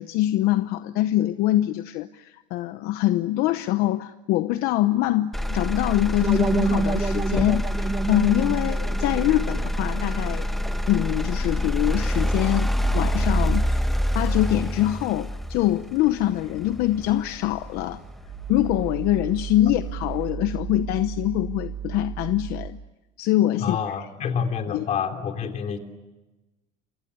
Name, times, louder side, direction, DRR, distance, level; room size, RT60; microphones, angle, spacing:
voice 1, 0.0-10.5 10.9-13.9 14.1-18.0 18.5-22.8 23.2-23.8 24.7-24.8, left 15 dB, 70° left, 0.9 m, -24 dB
Motor vehicle (road), 5.3-19.3 19.8-20.3, equal, ahead, 1.1 m, -27 dB
sound 1, 6.2-11.1, right 4 dB, 20° right, 1.1 m, -29 dB
sound 2, 15.2-22.7, right 9 dB, 90° right, 1.9 m, -36 dB
voice 2, 23.6-25.8, left 7 dB, 45° left, 3.4 m, -28 dB
29.5 x 25.0 x 6.8 m
cardioid pair, 115°, 16 cm